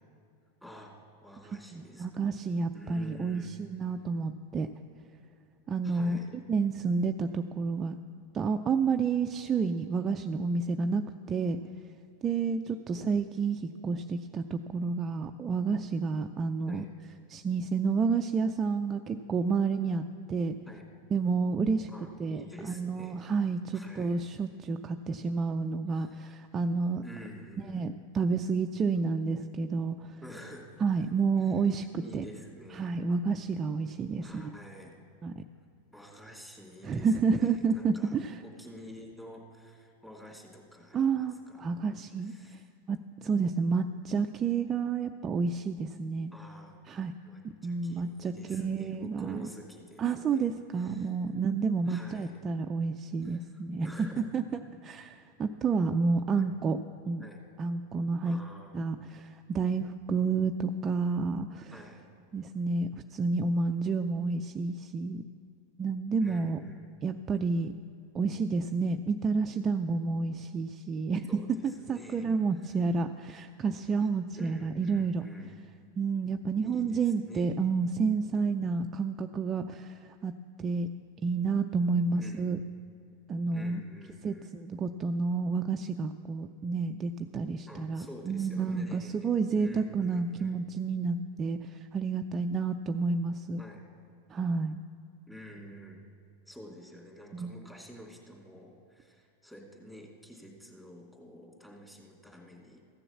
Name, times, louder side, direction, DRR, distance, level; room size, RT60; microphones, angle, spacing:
voice 1, 0.6-2.1 2.7-3.5 5.8-6.3 12.9-13.1 16.7-16.9 20.7-20.9 21.9-23.2 23.7-24.2 25.9-26.4 27.0-27.9 30.2-31.1 31.4-31.7 32.0-32.9 34.2-35.0 35.9-41.7 42.2-42.6 46.3-46.8 47.2-51.1 51.8-52.4 53.2-55.1 56.3-56.5 57.2-57.4 58.2-58.8 61.7-62.0 66.2-66.9 71.3-72.3 72.6-72.8 74.0-74.1 74.3-75.6 76.6-77.6 82.1-82.6 83.5-84.5 87.7-90.5 93.6-93.8 95.3-96.0 96.5-102.8, equal, 5° left, 0 dB, 2.6 m, -49 dB
voice 2, 1.5-4.7 5.7-6.2 6.5-8.0 8.3-11.6 12.2-16.8 17.3-20.0 20.3-20.6 21.1-21.9 22.2-27.0 27.7-30.2 30.8-32.2 32.7-34.4 35.2-35.4 36.8-38.4 40.9-42.3 42.9-46.3 46.9-47.1 47.4-49.5 50.0-53.9 54.3-54.4 54.8-56.8 57.1-57.2 57.6-58.4 58.7-61.7 62.3-65.2 65.8-66.6 67.0-67.7 68.1-71.3 71.6-75.2 76.0-80.3 80.6-80.9 81.2-82.6 83.3-83.8 84.2-93.6 94.3-94.7 97.3-97.5, right 4 dB, 30° right, 6 dB, 0.4 m, -30 dB
14.5 x 6.9 x 7.1 m, 2.5 s
hypercardioid pair, 100°, 0 cm